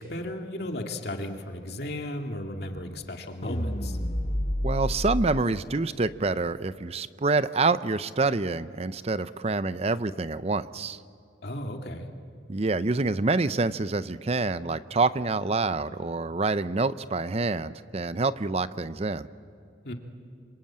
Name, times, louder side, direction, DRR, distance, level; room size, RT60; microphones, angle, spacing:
voice 1, 0.0-4.0 11.4-12.1 19.8-19.9, left 1 dB, 60° left, 3 dB, 2.2 m, -35 dB
sound 1, 3.4-5.3, equal, 35° left, 1.6 m, -29 dB
voice 2, 4.6-11.0 12.5-19.3, right 3 dB, 35° right, 14 dB, 0.6 m, -27 dB
26.5 x 25.5 x 8.8 m, 2.3 s
head